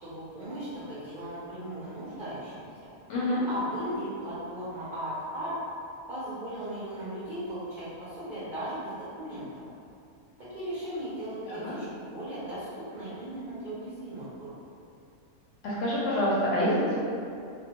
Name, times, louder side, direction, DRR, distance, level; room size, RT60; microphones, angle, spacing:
voice 1, 0.0-2.6 3.5-5.5 6.1-9.6 10.5-14.5, right 1 dB, 55° right, -13 dB, 0.5 m, -37 dB
voice 2, 3.1-3.4 11.5-11.7 15.6-17.0, left 1 dB, 65° left, -7 dB, 0.8 m, -27 dB
2.2 x 2.2 x 2.8 m, 2.5 s
omnidirectional pair, 1.5 m